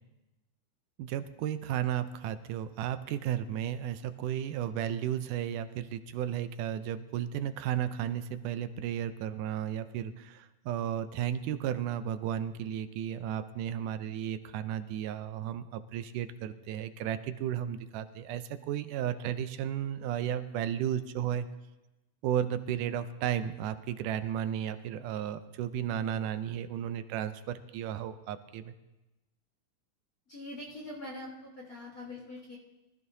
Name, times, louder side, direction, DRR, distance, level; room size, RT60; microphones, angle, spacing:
voice 1, 1.0-21.5 22.2-28.7, right 10 dB, 85° right, 10 dB, 2.2 m, -34 dB
voice 2, 30.3-32.6, left 1 dB, 35° left, -5 dB, 1.5 m, -43 dB
23.0 x 14.0 x 2.7 m, 1.0 s
omnidirectional pair, 3.6 m